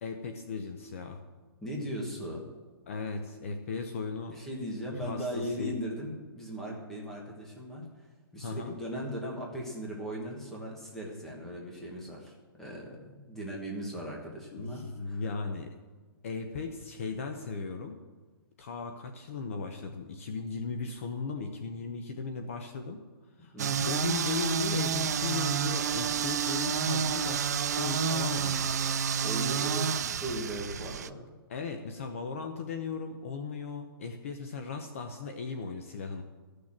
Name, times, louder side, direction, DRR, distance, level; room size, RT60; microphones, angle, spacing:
voice 1, 0.0-1.2 2.9-4.4 5.0-5.8 8.4-8.8 14.5-15.7 16.2-18.0 18.6-23.0 23.4-23.5 23.9-28.7 31.5-36.2, left 5 dB, 35° left, 5 dB, 0.8 m, -37 dB
voice 2, 1.6-2.5 4.3-8.1 8.3-15.2 23.5-23.9 29.2-31.4, equal, 5° left, -2 dB, 1.3 m, -38 dB
sound 1, 23.6-31.1, right 7 dB, 40° right, 0.4 m, -29 dB
13.5 x 6.5 x 7.3 m, 1.3 s
hypercardioid pair, 175°, 13 cm